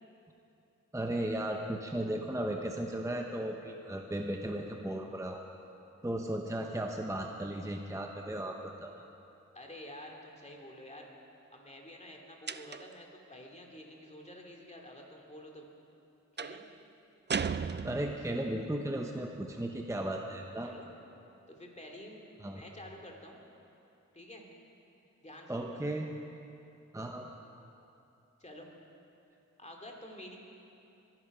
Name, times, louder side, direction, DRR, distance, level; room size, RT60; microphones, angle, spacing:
voice 1, 0.9-5.4 6.0-8.9 17.8-20.7 22.4-22.6 25.5-26.1 26.9-27.3, right 1 dB, 10° right, 2 dB, 0.9 m, -35 dB
voice 2, 9.5-11.1 11.5-15.7 16.3-16.6 20.6-20.9 21.5-22.2 22.5-23.4 24.1-24.4 25.2-25.8 28.4-28.7 29.6-30.4, left 1 dB, 25° left, 0 dB, 2.6 m, -49 dB
sound 1, 12.5-13.1 16.4-16.7 17.3-18.4, right 6 dB, 35° right, 0.4 m, -35 dB
22.5 x 11.0 x 4.9 m, 2.7 s
wide cardioid pair, 65°, 30 cm